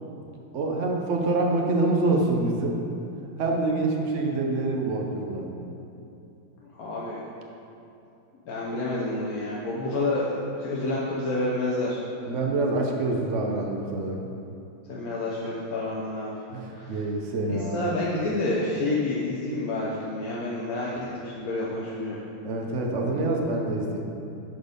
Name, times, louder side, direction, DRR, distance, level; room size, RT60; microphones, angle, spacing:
voice 1, 0.5-2.8 3.4-5.5 12.3-14.2 16.5-17.8 22.4-24.0, right 2 dB, 65° right, 1 dB, 0.7 m, -26 dB
voice 2, 6.7-7.2 8.4-12.0 14.9-16.3 16.7-17.0 17.5-22.2, left 2 dB, 55° left, -6 dB, 1.1 m, -29 dB
11.5 x 4.0 x 5.2 m, 2.8 s
omnidirectional pair, 2.4 m